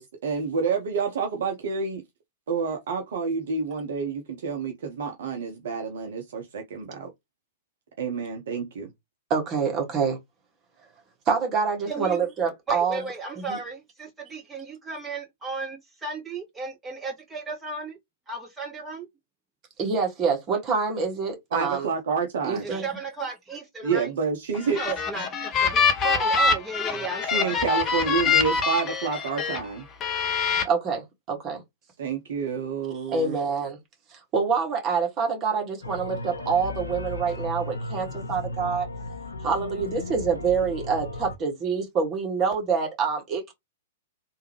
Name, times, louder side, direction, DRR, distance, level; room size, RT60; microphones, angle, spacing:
voice 1, 0.0-2.0 2.5-7.1 8.0-8.9 21.5-22.6 23.8-24.8 27.2-29.8 32.0-33.4, right 5 dB, 60° right, 0.9 m, -28 dB
voice 2, 9.3-10.2 11.3-13.0 13.4-13.6 19.8-21.9 22.4-22.8 30.6-31.6 33.1-33.8 34.1-38.9 39.4-43.5, right 5 dB, 30° right, 1.7 m, -26 dB
voice 3, 11.9-12.2 12.7-18.0 18.3-19.1 22.6-24.1 24.7-27.8, right 4 dB, 10° right, 2.0 m, -35 dB
sound 1, 24.5-29.6 30.0-30.6, left 5 dB, 25° left, 0.9 m, -24 dB
sound 2, 35.8-41.4, left 2 dB, 80° left, 0.7 m, -35 dB
3.5 x 2.8 x 3.0 m
figure-of-eight pair, 105°, 0 cm